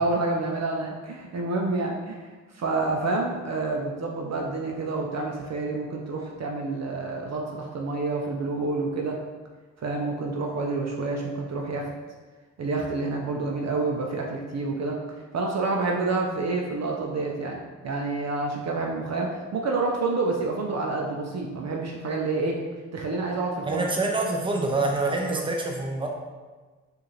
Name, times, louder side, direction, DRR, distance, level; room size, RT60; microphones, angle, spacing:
voice 1, 0.0-2.3 2.5-9.2 9.8-11.9 12.6-15.0 15.3-22.6 22.9-23.9 25.1-25.4, right 3 dB, 50° right, 0 dB, 0.6 m, -28 dB
voice 2, 23.6-26.1, right 2 dB, 15° right, 0 dB, 0.7 m, -26 dB
4.6 x 2.5 x 3.2 m, 1.3 s
cardioid pair, 65°, 33 cm